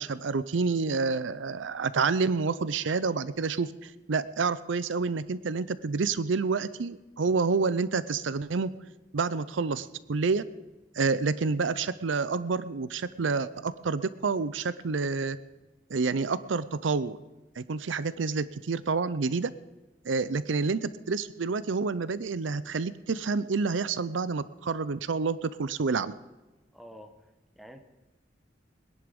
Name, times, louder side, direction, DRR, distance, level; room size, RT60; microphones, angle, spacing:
voice 1, 0.0-8.7 9.1-10.4 11.0-15.4 15.9-17.2 17.6-19.5 20.0-26.1, right 4 dB, 85° right, 16 dB, 0.6 m, -28 dB
voice 2, 26.7-27.2 27.5-27.8, equal, ahead, 6 dB, 1.2 m, -47 dB
21.5 x 10.5 x 5.3 m, 1.1 s
head